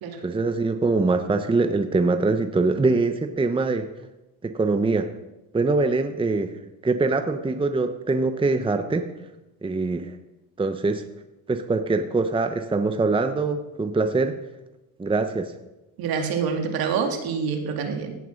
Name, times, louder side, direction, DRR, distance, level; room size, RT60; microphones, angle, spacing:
voice 1, 0.2-3.9 4.4-5.1 5.5-6.5 6.8-9.1 9.6-10.1 10.6-11.0 11.5-14.3 15.0-15.5, right 3 dB, 15° right, 8 dB, 0.8 m, -23 dB
voice 2, 16.0-18.2, right 6 dB, 60° right, 4 dB, 2.3 m, -26 dB
16.5 x 5.9 x 6.5 m, 1.0 s
supercardioid pair, 85°, 41 cm